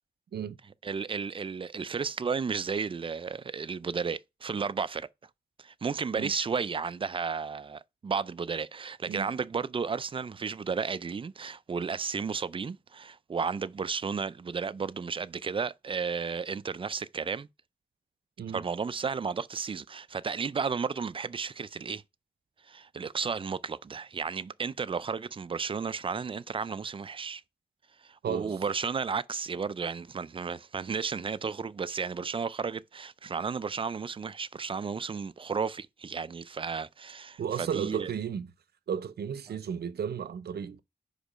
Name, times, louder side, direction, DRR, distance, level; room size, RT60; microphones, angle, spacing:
voice 1, 0.8-5.1 5.6-17.5 18.5-22.0 22.7-27.4 28.0-37.4 37.7-38.1, right 5 dB, 30° right, 0.4 m, -33 dB
voice 2, 28.2-28.6 37.4-38.5 38.9-40.8, right 7 dB, 75° right, 0.6 m, -34 dB
5.1 x 4.5 x 5.0 m
wide cardioid pair, 110°, 17 cm